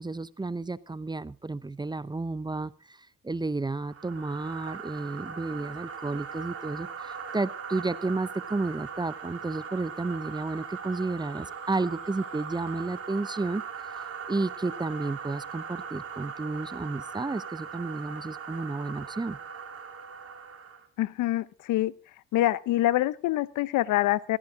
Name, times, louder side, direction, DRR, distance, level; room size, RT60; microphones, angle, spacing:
voice 1, 0.0-3.0 3.2-13.6 14.3-19.4, right 3 dB, 15° right, 17 dB, 0.7 m, -32 dB
sound 1, 3.8-20.9, right 6 dB, 50° right, 3.5 m, -40 dB
voice 2, 21.0-21.9 22.3-24.4, left 15 dB, 85° left, 19 dB, 0.7 m, -25 dB
17.0 x 15.0 x 3.7 m, 0.34 s
cardioid pair, 90°, 30 cm